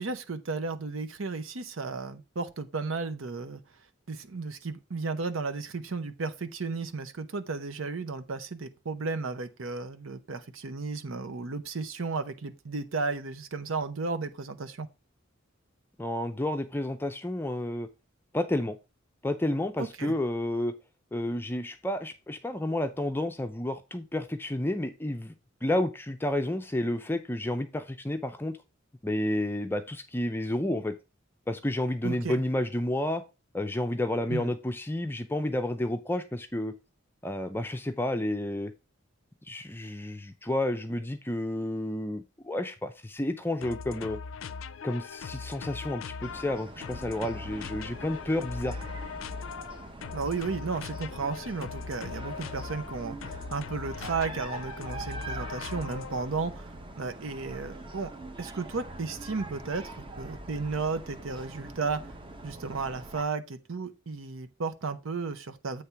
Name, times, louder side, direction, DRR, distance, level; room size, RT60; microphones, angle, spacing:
voice 1, 0.0-3.6 4.1-14.9 19.8-20.1 32.0-32.4 34.3-34.5 50.1-56.7 57.0-58.1 58.4-62.1 62.4-65.8, right 4 dB, 90° right, 0.8 m, -34 dB
voice 2, 16.0-17.9 18.3-18.8 19.2-20.7 21.1-25.3 25.6-28.6 29.0-31.0 31.5-33.2 33.5-36.7 37.2-38.7 39.5-44.2 44.8-48.8, left 1 dB, 10° left, 0.5 m, -30 dB
sound 1, 43.6-56.4, left 5 dB, 75° left, 0.4 m, -40 dB
sound 2, 46.2-63.2, right 2 dB, 25° right, 0.9 m, -43 dB
8.1 x 3.4 x 5.7 m
head